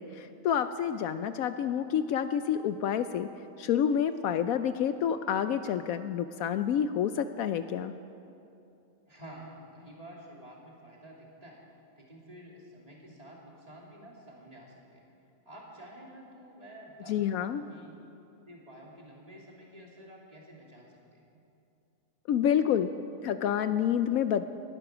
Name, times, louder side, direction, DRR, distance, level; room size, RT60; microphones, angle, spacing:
voice 1, 0.0-3.3 3.6-7.9 17.1-17.6 22.3-22.9 23.2-24.4, left 9 dB, 75° left, 11 dB, 1.0 m, -28 dB
voice 2, 9.1-11.6 12.0-15.1 15.4-17.9 18.5-21.2, right 1 dB, 25° right, -3 dB, 2.9 m, -50 dB
19.0 x 11.5 x 6.1 m, 2.7 s
omnidirectional pair, 1.6 m